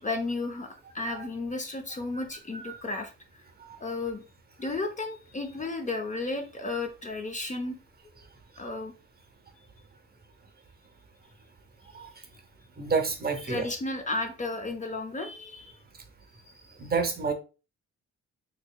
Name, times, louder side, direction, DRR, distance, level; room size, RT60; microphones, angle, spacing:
voice 1, 0.0-3.1 3.8-4.2 4.6-7.8 8.6-8.9 13.4-15.8 16.5-16.8, left 2 dB, 25° left, 0.6 m, -33 dB
voice 2, 12.8-13.7 16.8-17.3, right 4 dB, 30° right, 0.8 m, -29 dB
4.4 x 2.9 x 2.2 m
cardioid pair, 90°, 30 cm